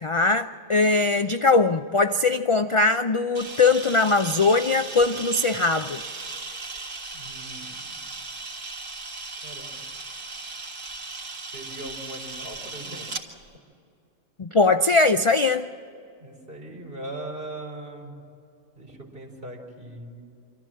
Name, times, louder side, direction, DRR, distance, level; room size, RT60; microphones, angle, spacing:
voice 1, 0.0-6.0 14.4-15.7, left 3 dB, 55° left, 9 dB, 0.3 m, -21 dB
Camera, 3.3-13.2, right 3 dB, 85° right, 2.2 m, -37 dB
voice 2, 7.1-8.1 9.4-9.9 11.5-13.2 16.2-18.2 18.7-20.2, right 1 dB, 45° right, 0 dB, 4.4 m, -40 dB
26.0 x 14.0 x 7.6 m, 2.5 s
omnidirectional pair, 1.3 m